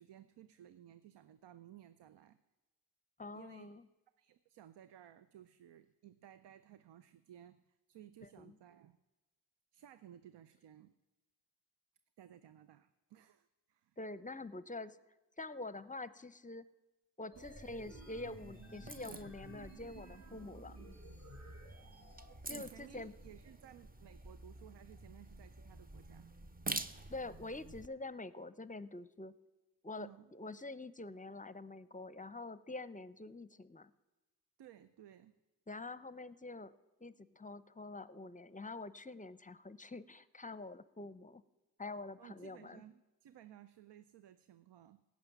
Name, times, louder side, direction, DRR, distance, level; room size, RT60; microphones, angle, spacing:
voice 1, 0.0-2.4 3.3-3.7 4.2-9.0 9.7-10.9 12.2-14.0 17.3-17.5 22.3-26.3 30.0-30.3 34.6-35.3 42.2-45.0, right 11 dB, 90° right, 13 dB, 0.5 m, -58 dB
voice 2, 3.2-3.8 8.4-8.5 14.0-15.0 15.4-16.6 17.2-20.8 22.5-23.1 27.1-29.3 29.8-33.9 35.7-36.7 37.0-41.4 41.8-42.8, left 2 dB, 20° left, 16 dB, 0.7 m, -46 dB
sound 1, 17.3-27.9, right 2 dB, 20° right, 0.8 m, -48 dB
sound 2, 17.3-22.3, right 1 dB, 45° right, 4.9 m, -55 dB
16.5 x 6.3 x 9.2 m, 1.1 s
cardioid pair, 40°, 40 cm